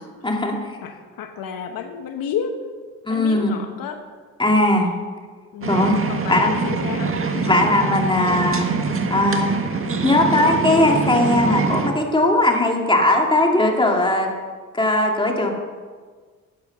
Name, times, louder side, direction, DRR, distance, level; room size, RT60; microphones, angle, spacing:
voice 1, 0.2-0.8 3.0-3.6 4.4-4.9 5.7-6.0 6.3-6.5 7.5-8.7 9.1-9.6 10.0-14.3 14.7-15.5, left 1 dB, 15° left, 1 dB, 2.5 m, -19 dB
voice 2, 0.8-2.6 3.1-4.0 4.8-5.0 5.5-5.8 6.1-7.6, left 7 dB, 70° left, 5 dB, 1.2 m, -31 dB
sound 1, 5.6-11.9, right 4 dB, 40° right, 1.8 m, -24 dB
12.0 x 8.9 x 6.7 m, 1.5 s
cardioid pair, 80°, 35 cm